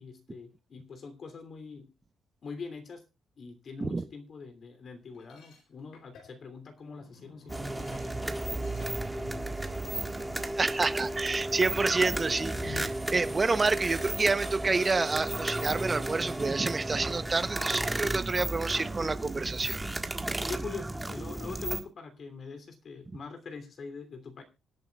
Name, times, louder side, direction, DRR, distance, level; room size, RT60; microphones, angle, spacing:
voice 1, 0.0-1.9 2.4-3.0 3.4-10.0 20.4-24.4, left 4 dB, 50° left, 3.1 m, -44 dB
sound 1, 5.1-11.2 11.5-13.2, left 7 dB, 75° left, 4.0 m, -53 dB
sound 2, 7.5-21.8, right 1 dB, 10° right, 1.6 m, -33 dB
voice 2, 10.6-19.8 20.1-20.3, right 3 dB, 30° right, 0.9 m, -29 dB
25.5 x 8.7 x 2.4 m
cardioid pair, 90°, 0 cm